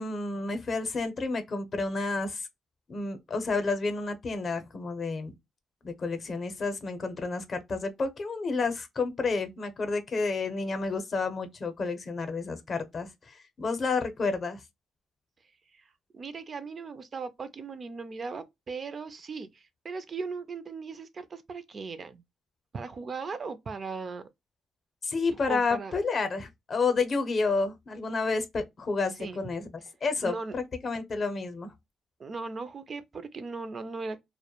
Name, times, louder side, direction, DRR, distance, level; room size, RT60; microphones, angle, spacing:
voice 1, 0.0-2.5 2.9-5.3 5.8-14.6 25.0-29.7 30.0-31.7, left 4 dB, 45° left, 0.6 m, -30 dB
voice 2, 16.1-22.2 22.7-24.3 25.5-26.0 29.2-29.4 30.2-30.5 32.2-34.2, right 4 dB, 40° right, 0.3 m, -38 dB
2.1 x 2.0 x 2.8 m
cardioid pair, 90°, 0 cm